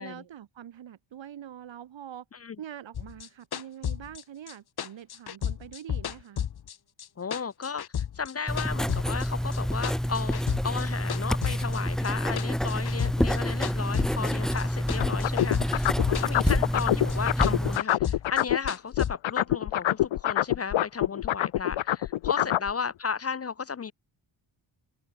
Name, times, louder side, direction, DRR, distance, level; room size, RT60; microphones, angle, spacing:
voice 1, 0.0-2.3 2.6-6.5 22.3-22.6, right 10 dB, 70° right, 2.6 m, -44 dB
sound 1, 2.9-7.1 7.3-9.3 9.5-10.8 11.1-14.6 14.9-16.8 17.1-19.1, left 9 dB, 55° left, 1.6 m, -33 dB
voice 2, 7.2-23.9, left 6 dB, 30° left, 0.6 m, -34 dB
Writing, 8.5-17.8, equal, ahead, 0.3 m, -28 dB
sound 2, 15.0-18.7 18.9-22.7, left 13 dB, 75° left, 0.9 m, -25 dB
wide cardioid pair, 165°, 47 cm